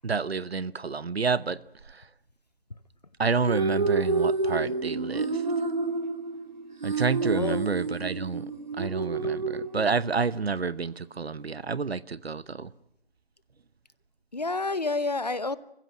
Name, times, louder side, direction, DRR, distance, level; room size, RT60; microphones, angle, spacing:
voice 1, 0.0-1.6 1.9-2.0 3.2-5.4 6.8-8.5 8.8-12.7, right 5 dB, 75° right, 19 dB, 1.0 m, -29 dB
sound 1, 3.2-10.3, right 3 dB, 45° right, 2.4 m, -29 dB
voice 2, 7.2-7.7 14.3-15.6, left 3 dB, 40° left, 17 dB, 0.8 m, -29 dB
28.0 x 15.5 x 9.0 m, 0.82 s
figure-of-eight pair, 175°, 31 cm